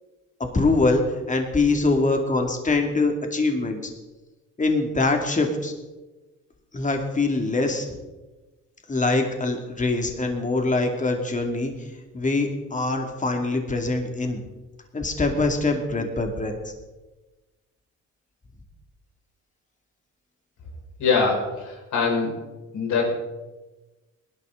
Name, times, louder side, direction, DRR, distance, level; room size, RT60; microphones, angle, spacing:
voice 1, 0.4-3.8 4.6-5.7 6.7-7.9 8.9-11.7 12.1-14.4 14.9-16.5, left 3 dB, 25° left, 3 dB, 2.4 m, -23 dB
voice 2, 21.0-22.4 22.7-23.1, left 4 dB, 80° left, -1 dB, 5.3 m, -23 dB
19.0 x 11.0 x 3.9 m, 1.1 s
cardioid pair, 90°, 30 cm